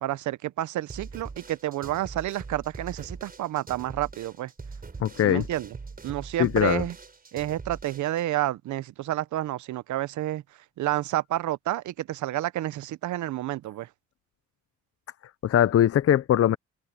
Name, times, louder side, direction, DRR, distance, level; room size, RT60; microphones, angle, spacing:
voice 1, 0.0-4.5 5.2-5.7 6.0-6.9 7.3-10.4 10.8-13.9, right 14 dB, 75° right, 0.8 m, -30 dB
sound 1, 0.9-8.2, right 4 dB, 30° right, 5.3 m, -42 dB
voice 2, 5.0-5.5 6.4-6.8 15.4-16.6, left 11 dB, 50° left, 0.7 m, -21 dB
open air
cardioid pair, 90°, 30 cm